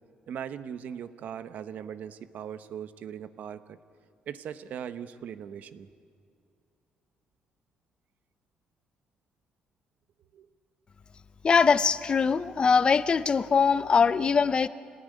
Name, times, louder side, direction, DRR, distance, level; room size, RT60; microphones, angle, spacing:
voice 1, 0.3-3.8 4.3-5.9 10.3-10.5, right 8 dB, 65° right, 11 dB, 1.1 m, -39 dB
voice 2, 11.4-14.7, left 5 dB, 35° left, 14 dB, 0.7 m, -22 dB
26.5 x 19.0 x 9.6 m, 2.3 s
cardioid pair, 130°, 3 cm